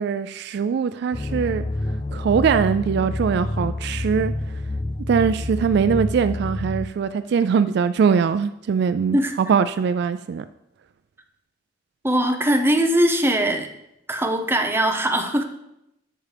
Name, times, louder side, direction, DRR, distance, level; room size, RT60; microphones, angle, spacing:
voice 1, 0.0-1.7 2.1-4.6 5.1-10.5, right 6 dB, 60° right, 12 dB, 0.3 m, -22 dB
sound 1, 1.1-6.9, left 1 dB, 25° left, 0.4 m, -28 dB
voice 2, 12.0-13.7 14.1-15.4, right 1 dB, 10° right, 3 dB, 0.8 m, -20 dB
12.0 x 6.8 x 3.4 m, 0.83 s
head